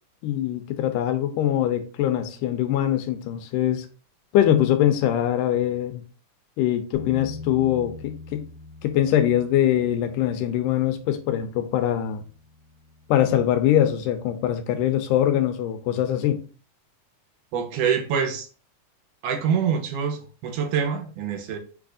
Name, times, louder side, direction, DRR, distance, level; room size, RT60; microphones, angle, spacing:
voice 1, 0.2-3.9 4.3-6.0 6.6-8.5 8.8-12.2 13.1-16.4, left 11 dB, 85° left, 2.1 m, -23 dB
Bass guitar, 6.9-13.2, left 4 dB, 65° left, 1.7 m, -43 dB
voice 2, 17.5-18.5 19.2-21.6, right 7 dB, 80° right, 2.2 m, -25 dB
6.0 x 3.4 x 2.5 m
omnidirectional pair, 3.8 m